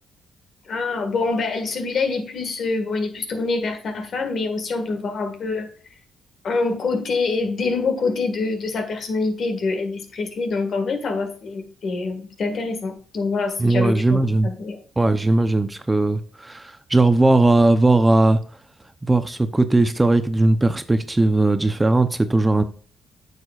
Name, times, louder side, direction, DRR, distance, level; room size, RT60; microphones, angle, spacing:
voice 1, 0.7-5.7 6.4-14.8, left 3 dB, 55° left, 1.6 m, -25 dB
voice 2, 13.6-14.5 15.0-18.4 19.0-22.6, right 2 dB, 15° right, 0.6 m, -18 dB
8.8 x 6.7 x 2.4 m
cardioid pair, 90°, 0 cm